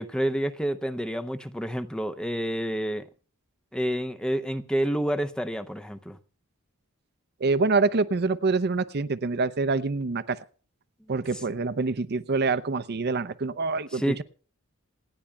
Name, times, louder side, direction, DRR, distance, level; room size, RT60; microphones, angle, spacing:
voice 1, 0.0-3.1 3.7-6.2 13.9-14.2, right 1 dB, 5° left, 0.7 m, -29 dB
voice 2, 7.4-10.4 11.1-14.2, right 3 dB, 50° right, 0.6 m, -26 dB
27.5 x 10.0 x 2.3 m
head